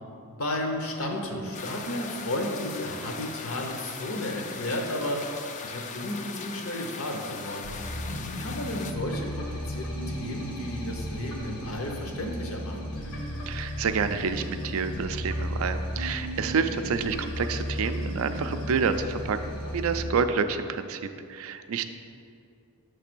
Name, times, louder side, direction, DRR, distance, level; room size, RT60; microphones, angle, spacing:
voice 1, 0.2-5.4 5.6-7.7 8.4-12.9, left 1 dB, 65° left, 2 dB, 0.9 m, -33 dB
sound 1, 1.5-8.9, left 5 dB, 35° left, 0.3 m, -39 dB
sound 2, 7.6-20.0, equal, 85° left, 1.2 m, -34 dB
voice 2, 13.5-21.0 21.3-21.9, right 5 dB, 65° right, 9 dB, 0.4 m, -28 dB
6.6 x 3.3 x 6.0 m, 2.5 s
head